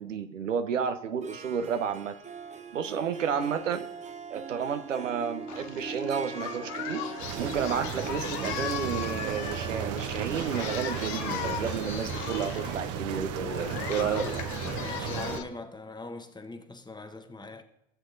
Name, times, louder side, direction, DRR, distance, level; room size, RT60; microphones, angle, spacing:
voice 1, 0.0-2.1 2.7-3.9 4.3-14.3, right 7 dB, 85° right, 0.7 m, -31 dB
Harp, 1.2-14.8, right 5 dB, 20° right, 0.7 m, -43 dB
Singing, 5.5-15.4, left 10 dB, 50° left, 0.9 m, -38 dB
sound 1, 7.2-15.4, right 8 dB, 40° right, 1.0 m, -35 dB
voice 2, 14.8-17.6, left 2 dB, 10° left, 1.0 m, -42 dB
18.0 x 7.7 x 2.6 m
hypercardioid pair, 75°, 37 cm